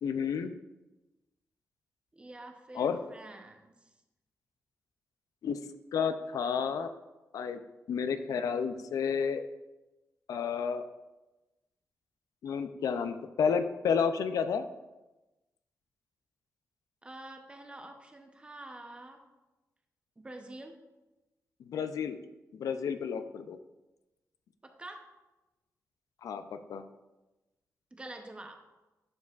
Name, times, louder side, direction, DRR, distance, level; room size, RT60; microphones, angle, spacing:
voice 1, 0.0-0.5 2.7-3.0 5.4-5.6 5.9-6.9 7.3-7.6 7.9-9.4 10.3-10.8 12.4-14.6 21.6-22.2 22.5-23.6 26.2-26.8, left 6 dB, 80° left, 10 dB, 0.4 m, -31 dB
voice 2, 2.1-3.7 17.0-19.3 20.2-20.8 24.6-25.1 27.9-28.7, right 2 dB, 20° right, 4 dB, 0.7 m, -47 dB
11.5 x 4.7 x 2.4 m, 1.1 s
wide cardioid pair, 130°, 6 cm